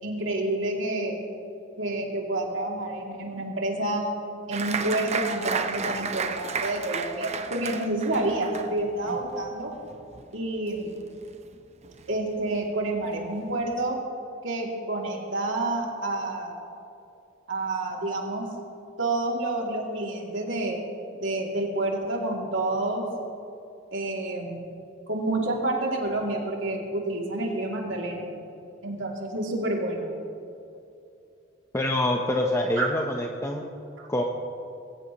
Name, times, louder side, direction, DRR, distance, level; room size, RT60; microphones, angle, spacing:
voice 1, 0.0-1.2 1.8-4.0 4.5-9.7 10.3-10.9 12.1-14.0 14.4-16.6 17.5-18.5 19.0-20.8 21.2-23.1 23.9-24.6 25.1-28.3 28.8-30.1 32.8-32.9 34.0-34.1, right 2 dB, 85° right, -1 dB, 2.7 m, -29 dB
Applause, 4.5-11.6 11.8-12.6 13.0-13.1 13.4-13.8, right 5 dB, 35° right, 0.7 m, -33 dB
voice 2, 31.7-33.7 34.1-34.2, left 1 dB, 15° left, 1 dB, 0.8 m, -26 dB
22.5 x 15.5 x 3.0 m, 2.7 s
head